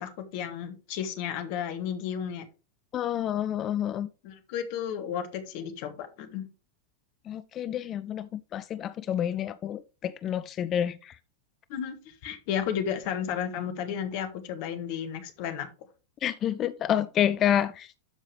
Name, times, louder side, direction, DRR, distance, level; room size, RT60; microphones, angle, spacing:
voice 1, 0.0-2.4 4.2-6.4 11.7-15.7, left 8 dB, 45° left, 1.4 m, -33 dB
voice 2, 2.9-4.1 7.3-11.2 16.2-17.9, left 10 dB, 30° left, 0.4 m, -28 dB
12.0 x 5.5 x 3.3 m
figure-of-eight pair, 90°, 0 cm